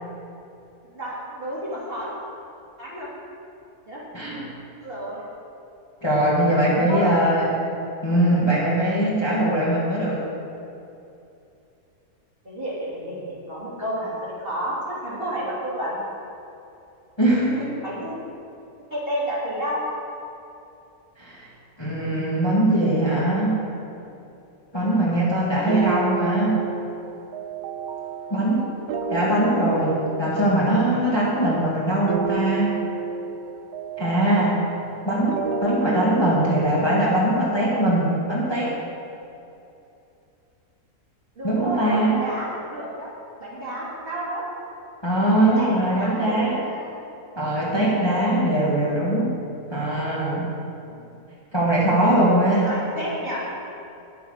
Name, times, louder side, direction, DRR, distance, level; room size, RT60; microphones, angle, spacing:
voice 1, 0.9-2.1 2.8-3.1 3.9-4.0 4.8-5.2 6.3-7.3 12.4-14.8 15.0-16.0 17.8-18.1 18.9-19.8 41.3-43.1 43.4-44.4 45.4-46.9 50.9-51.0 52.6-53.5, right 1 dB, 35° right, -8 dB, 3.2 m, -31 dB
voice 2, 4.1-4.5 6.0-7.5 8.0-10.2 17.2-17.8 21.2-21.5 21.8-23.6 24.7-26.6 28.3-28.7 29.1-32.7 34.0-34.6 35.0-38.7 41.4-42.2 45.0-46.6 47.4-49.3 49.7-50.5 51.5-52.7, right 1 dB, 15° left, -7 dB, 1.9 m, -21 dB
sound 1, 25.7-37.1, right 3 dB, 90° right, 1.2 m, -30 dB
10.0 x 7.9 x 6.6 m, 2.7 s
omnidirectional pair, 1.6 m